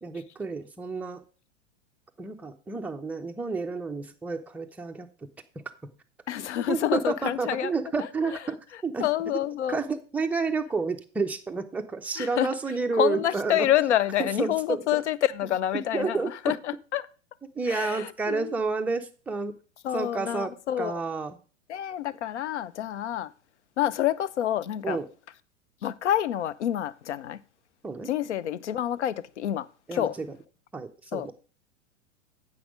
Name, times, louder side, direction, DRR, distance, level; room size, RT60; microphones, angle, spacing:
voice 1, 0.0-1.2 2.2-5.3 5.6-5.9 6.7-9.1 9.7-13.7 14.2-15.0 15.9-16.5 17.6-19.5 19.9-21.4 24.8-25.1 27.8-28.1 29.9-30.3 30.7-31.3, right 4 dB, 5° right, 0.4 m, -30 dB
voice 2, 6.3-7.7 9.0-9.8 12.2-12.5 12.9-17.1 17.7-18.5 19.8-21.0 21.7-23.3 23.8-25.0 25.8-27.4 28.1-30.2 31.1-31.3, left 12 dB, 70° left, 0.6 m, -28 dB
8.6 x 6.0 x 5.0 m
figure-of-eight pair, 100°, 37 cm